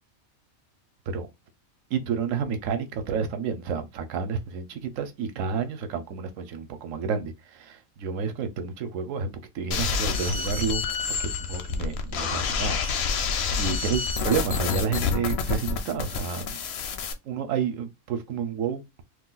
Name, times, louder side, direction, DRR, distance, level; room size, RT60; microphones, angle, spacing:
voice 1, 1.9-12.8 13.6-16.6 17.3-19.0, right 6 dB, 70° right, 1.0 m, -30 dB
sound 1, 9.7-17.1, left 5 dB, 65° left, 0.7 m, -28 dB
2.5 x 2.3 x 3.8 m
omnidirectional pair, 1.5 m